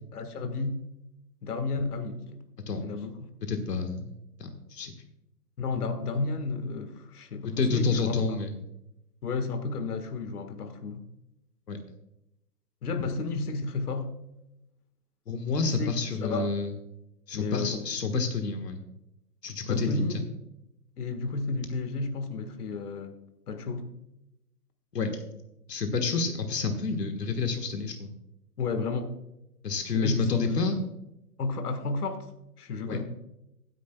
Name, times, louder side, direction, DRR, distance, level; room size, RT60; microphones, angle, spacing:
voice 1, 0.1-0.8 1.4-2.4 2.8-3.3 5.6-8.2 9.2-11.0 12.8-14.1 15.6-16.5 17.3-17.8 19.6-20.2 21.0-23.2 23.5-23.9 28.6-29.1 29.9-30.6 31.4-32.2 32.6-33.0, left 3 dB, 70° left, 8 dB, 1.7 m, -32 dB
voice 2, 3.5-4.9 7.6-8.5 11.7-11.8 15.3-16.7 17.3-18.8 19.4-20.2 24.9-25.1 25.7-28.1 29.6-30.8 32.9-33.0, left 4 dB, 85° left, 6 dB, 1.6 m, -29 dB
16.0 x 9.9 x 2.3 m, 0.85 s
hypercardioid pair, 145°, 47 cm